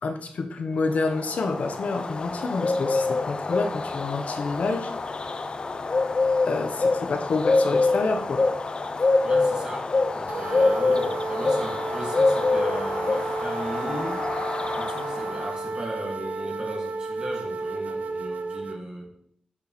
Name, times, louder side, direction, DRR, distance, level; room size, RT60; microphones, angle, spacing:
voice 1, 0.0-4.9 5.4-5.5 6.4-8.4, left 3 dB, 70° left, 5 dB, 0.8 m, -28 dB
sound 1, 1.0-15.6, left 3 dB, 40° left, 0.4 m, -26 dB
voice 2, 9.2-14.3 14.8-19.1, right 1 dB, 30° right, 0 dB, 1.9 m, -36 dB
sound 2, 10.3-18.8, right 3 dB, 75° right, 0.5 m, -32 dB
8.7 x 6.1 x 3.1 m, 0.68 s
wide cardioid pair, 125°, 3 cm